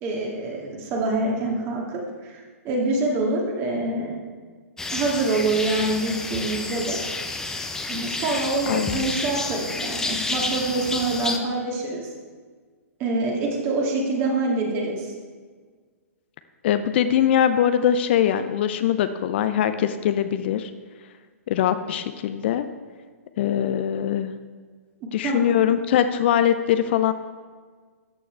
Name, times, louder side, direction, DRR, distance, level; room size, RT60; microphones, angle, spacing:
voice 1, 0.0-4.2 4.9-7.0 7.9-12.1 13.0-15.1 25.2-25.7, right 2 dB, 30° right, -1 dB, 2.3 m, -26 dB
sound 1, 4.8-11.4, left 3 dB, 5° left, 0.7 m, -30 dB
voice 2, 8.7-9.1 16.6-20.7 21.5-22.6 23.4-24.3 25.1-27.1, left 10 dB, 45° left, 10 dB, 0.5 m, -22 dB
13.0 x 8.6 x 3.4 m, 1.5 s
figure-of-eight pair, 115°, 8 cm